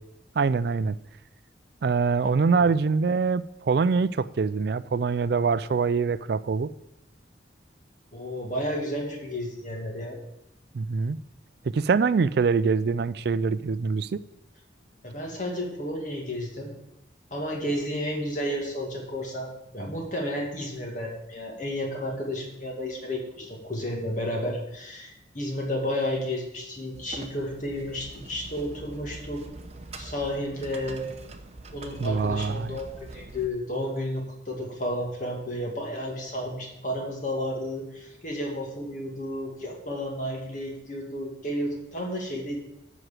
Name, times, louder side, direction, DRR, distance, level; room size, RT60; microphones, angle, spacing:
voice 1, 0.4-1.0 1.8-6.7 10.7-11.2 11.6-14.2 32.0-32.8, right 5 dB, 55° right, 0.3 m, -24 dB
voice 2, 8.1-10.2 15.0-16.7 17.3-29.4 30.0-31.0 31.7-42.6, equal, 40° left, 2.2 m, -32 dB
sound 1, 26.9-33.5, right 2 dB, 35° right, 0.8 m, -43 dB
7.9 x 6.1 x 7.5 m
head